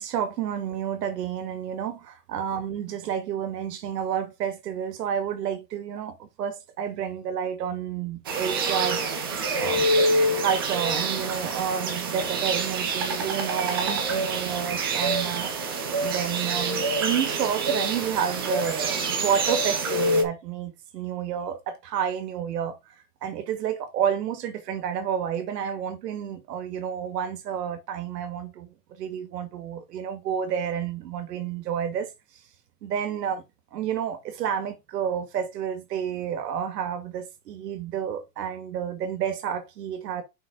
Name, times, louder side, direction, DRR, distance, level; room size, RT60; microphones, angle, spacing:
voice 1, 0.0-9.0 9.5-9.9 10.2-15.5 16.0-22.9 23.2-32.1 32.8-33.4 33.7-40.2, right 8 dB, 90° right, 2.2 m, -30 dB
sound 1, 8.2-20.2, right 2 dB, 15° right, 0.4 m, -26 dB
5.7 x 5.4 x 3.8 m
supercardioid pair, 180°, 47 cm